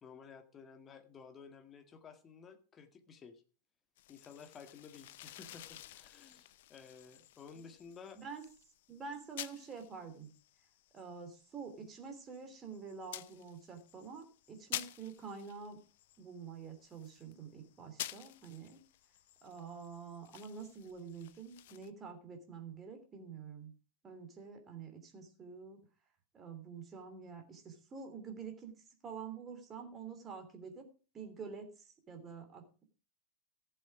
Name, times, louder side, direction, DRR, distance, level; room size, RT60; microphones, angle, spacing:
voice 1, 0.0-3.4 4.1-8.2, left 6 dB, 25° left, 7 dB, 1.8 m, -54 dB
sound 1, 4.0-21.9, left 14 dB, 55° left, 0.5 m, -51 dB
voice 2, 8.9-10.3 10.9-15.8 16.2-18.8 19.4-23.7 24.0-25.8 26.3-28.7 29.0-30.9 31.1-32.8, right 5 dB, 25° right, 5 dB, 3.1 m, -47 dB
15.0 x 7.8 x 4.9 m, 0.36 s
figure-of-eight pair, 90°, 0 cm